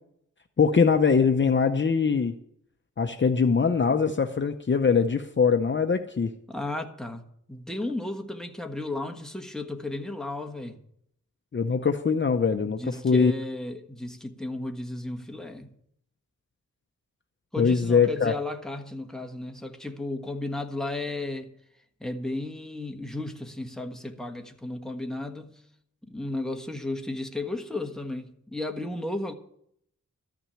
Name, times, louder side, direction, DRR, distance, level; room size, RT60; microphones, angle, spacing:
voice 1, 0.6-2.3 3.0-6.3 11.5-13.3 17.6-18.3, left 5 dB, 35° left, 0.7 m, -22 dB
voice 2, 6.5-7.2 7.5-10.8 12.6-15.7 17.5-21.5 22.0-25.6 26.1-29.3, left 2 dB, ahead, 1.5 m, -34 dB
13.5 x 6.1 x 9.8 m
wide cardioid pair, 90°, 31 cm